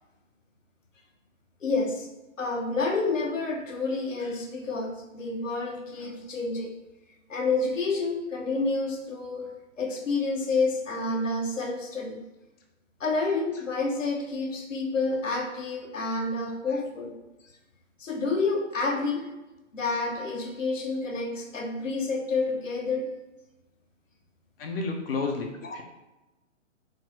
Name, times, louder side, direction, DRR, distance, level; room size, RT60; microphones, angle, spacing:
voice 1, 1.6-2.1 2.4-6.7 7.3-9.5 9.8-12.2 13.0-17.1 18.0-19.3 19.7-23.1 25.6-25.8, left 3 dB, 90° left, 1 dB, 0.8 m, -29 dB
voice 2, 24.6-25.8, left 3 dB, 50° left, 2 dB, 0.7 m, -31 dB
4.0 x 2.0 x 3.0 m, 1.0 s
figure-of-eight pair, 130°, 37 cm